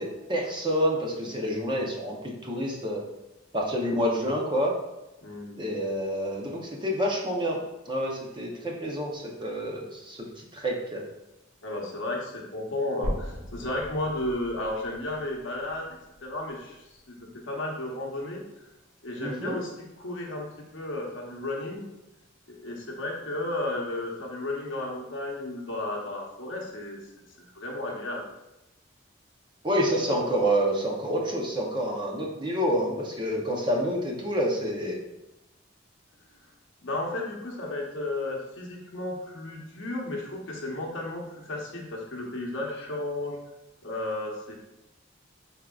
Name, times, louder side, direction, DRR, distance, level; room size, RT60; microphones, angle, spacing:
voice 1, 0.0-3.0 3.5-4.7 5.6-7.6 7.9-11.0 19.2-19.6 29.6-35.0, equal, 25° right, -1 dB, 0.6 m, -28 dB
voice 2, 5.2-5.7 11.6-15.9 16.2-17.2 17.5-18.4 19.0-20.5 20.7-21.8 22.5-27.0 27.5-28.2 36.8-43.4 43.8-44.5, left 2 dB, 70° left, -1 dB, 0.9 m, -33 dB
sound 1, 13.0-17.0 17.6-17.7 18.3-18.4 18.7-18.8 19.6-19.7, equal, 75° right, 1.3 m, -38 dB
4.8 x 3.5 x 2.3 m, 0.95 s
head